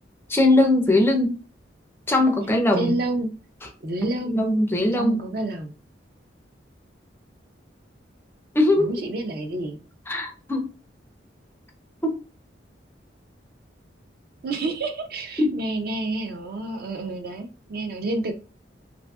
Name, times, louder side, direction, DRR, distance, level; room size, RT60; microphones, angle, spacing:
voice 1, 0.3-1.4 2.1-2.9 4.3-5.2 8.6-8.9 10.1-10.7 12.0-12.1 15.4-15.5, left 1 dB, 15° left, 0.4 m, -20 dB
voice 2, 2.7-3.3 3.8-4.4 4.9-5.7 8.8-9.8 14.4-18.3, right 2 dB, 55° right, 0.5 m, -29 dB
2.5 x 2.4 x 2.3 m
head